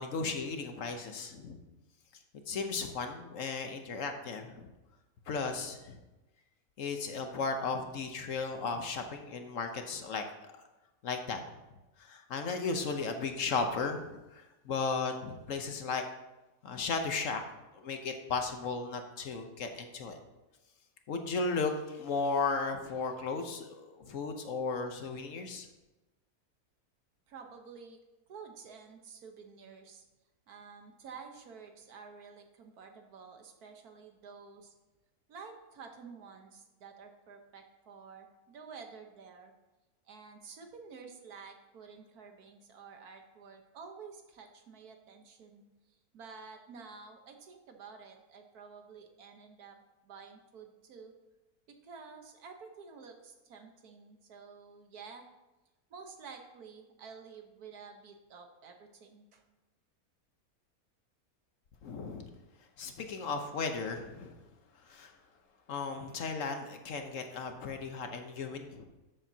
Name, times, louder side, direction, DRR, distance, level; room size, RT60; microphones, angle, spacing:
voice 1, 0.0-1.6 2.5-4.7 5.3-6.0 6.8-10.2 11.0-11.4 12.0-16.0 16.6-17.4 17.7-20.2 21.1-25.7 61.8-62.3 62.8-64.4 64.9-65.1 65.7-68.9, left 4 dB, 60° left, 5 dB, 1.2 m, -35 dB
voice 2, 27.3-28.0 28.3-30.0 30.5-34.7 35.3-39.5 40.0-49.8 50.0-51.1 51.7-55.3 55.9-59.4, right 5 dB, 80° right, 4 dB, 1.5 m, -51 dB
13.0 x 7.1 x 2.8 m, 1.1 s
omnidirectional pair, 1.6 m